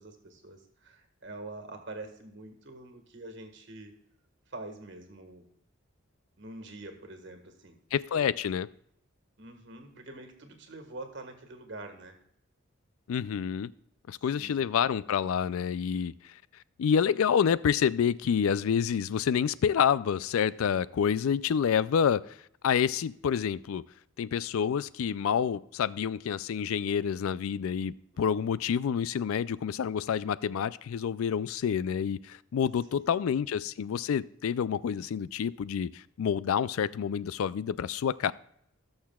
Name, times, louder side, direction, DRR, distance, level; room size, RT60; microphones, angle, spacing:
voice 1, 0.0-3.9 4.5-5.4 6.4-7.8 8.1-8.3 9.4-12.1 14.3-14.7 25.4-25.6 28.1-28.6 32.9-33.3, right 2 dB, 55° right, 1.6 m, -45 dB
voice 2, 7.9-8.7 13.1-13.7 14.1-16.1 16.8-22.2 22.6-23.8 24.2-38.3, left 7 dB, 75° left, 0.3 m, -28 dB
19.0 x 6.6 x 2.3 m
head